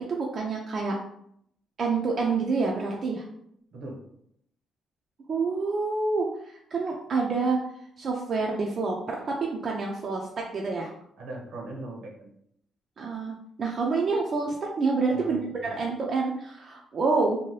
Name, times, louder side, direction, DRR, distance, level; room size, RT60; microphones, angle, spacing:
voice 1, 0.1-1.0 1.8-3.2 5.3-7.6 8.0-10.9 13.0-15.4 15.8-17.4, right 4 dB, 50° right, -1 dB, 0.4 m, -27 dB
voice 2, 11.2-12.3 15.1-15.7, right 2 dB, 75° right, 0 dB, 0.8 m, -40 dB
2.7 x 2.2 x 3.1 m, 0.72 s
cardioid pair, 90°, 0 cm